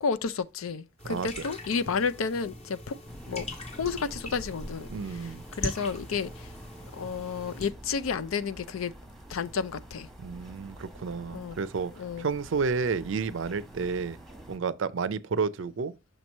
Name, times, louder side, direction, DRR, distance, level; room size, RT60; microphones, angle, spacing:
voice 1, 0.0-3.0 3.3-3.5 3.7-4.9 5.5-6.5 6.9-8.9 9.3-10.1 11.3-11.6 12.0-12.3, left 5 dB, 80° left, 0.5 m, -31 dB
sound 1, 1.0-7.7, left 1 dB, 30° left, 1.2 m, -41 dB
voice 2, 1.0-1.4 4.9-5.4 10.2-11.9 12.2-14.2 14.5-15.9, right 5 dB, 65° right, 0.5 m, -31 dB
sound 2, 3.1-14.6, right 1 dB, ahead, 1.1 m, -47 dB
6.5 x 3.0 x 5.2 m
head